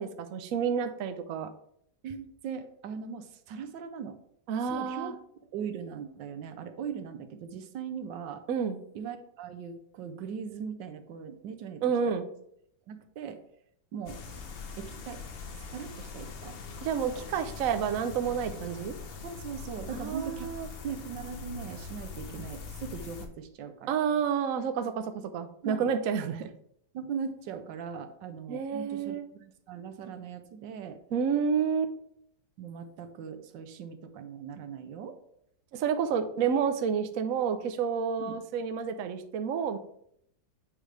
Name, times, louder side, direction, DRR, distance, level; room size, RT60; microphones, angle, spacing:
voice 1, 0.0-1.5 4.5-5.1 8.5-8.8 11.8-12.3 16.8-18.9 20.0-20.7 23.9-26.5 28.5-29.2 31.1-31.9 35.7-39.8, right 7 dB, 65° right, 8 dB, 0.9 m, -29 dB
voice 2, 2.0-4.2 4.6-5.1 5.5-8.4 8.9-12.1 12.9-13.4 13.9-14.2 14.8-15.2 15.6-16.6 19.2-20.5 20.8-24.0 25.6-25.9 26.9-31.0 32.6-35.2 38.2-38.4, right 7 dB, 90° right, 9 dB, 1.4 m, -40 dB
sound 1, 14.1-23.3, left 5 dB, 50° left, 0.7 m, -42 dB
9.1 x 5.0 x 3.3 m, 0.71 s
omnidirectional pair, 1.9 m